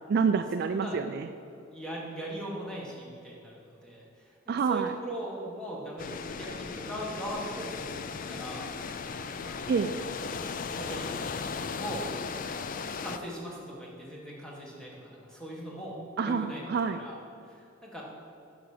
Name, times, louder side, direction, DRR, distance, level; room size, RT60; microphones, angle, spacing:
voice 1, 0.1-1.3 4.5-4.9 9.7-9.9 16.2-17.0, right 5 dB, 50° right, 8 dB, 0.3 m, -27 dB
voice 2, 1.7-8.0 8.3-8.7 9.4-9.8 10.8-11.1 11.7-12.1 13.0-16.0 16.2-16.6 16.9-17.2 17.4-18.0, right 1 dB, 5° left, -4 dB, 1.5 m, -40 dB
sound 1, 6.0-13.2, left 5 dB, 40° left, 0.4 m, -36 dB
7.8 x 5.8 x 6.6 m, 2.6 s
head